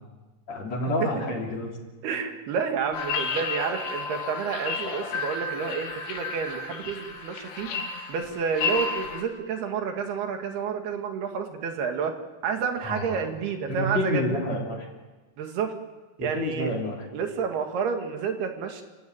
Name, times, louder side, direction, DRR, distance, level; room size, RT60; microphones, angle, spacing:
voice 1, 0.5-1.7 12.8-13.2 13.7-14.9 16.2-17.1, left 1 dB, 45° left, 0 dB, 4.2 m, -29 dB
voice 2, 2.0-7.7 8.1-12.1 12.4-14.3 15.4-15.7 16.2-16.7 17.1-18.8, right 6 dB, 70° right, 5 dB, 3.8 m, -29 dB
sound 1, 2.9-9.2, left 4 dB, 80° left, 4.4 m, -32 dB
29.5 x 16.0 x 9.4 m, 1.2 s
omnidirectional pair, 4.8 m